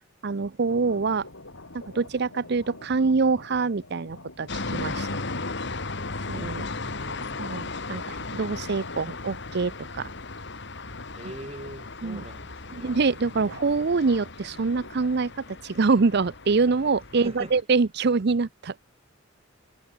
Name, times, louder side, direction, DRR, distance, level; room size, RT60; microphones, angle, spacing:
voice 1, 0.2-1.3 1.7-5.2 6.3-6.6 7.4-10.1 12.0-12.2 12.7-15.3 15.6-18.7, right 4 dB, 55° right, 0.6 m, -25 dB
sound 1, 0.6-15.4, left 2 dB, 90° left, 4.4 m, -48 dB
sound 2, 4.5-17.6, left 3 dB, 60° left, 2.4 m, -36 dB
voice 2, 6.7-7.6 11.1-12.9 17.1-17.5, right 1 dB, 30° right, 3.6 m, -42 dB
head